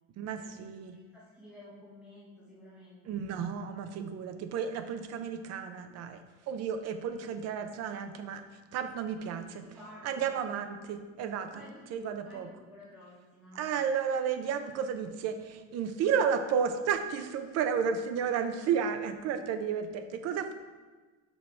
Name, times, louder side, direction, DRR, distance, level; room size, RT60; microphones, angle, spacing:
voice 1, 0.2-1.0 3.0-6.2 6.5-8.4 8.7-9.7 10.0-11.6 11.9-12.5 13.5-20.5, right 7 dB, 50° right, 8 dB, 0.6 m, -32 dB
voice 2, 0.9-3.3 9.1-9.3 9.6-10.7 11.5-13.6 17.4-17.5, left 1 dB, 5° right, -9 dB, 1.1 m, -53 dB
5.7 x 5.4 x 4.4 m, 1.3 s
cardioid pair, 170°, 32 cm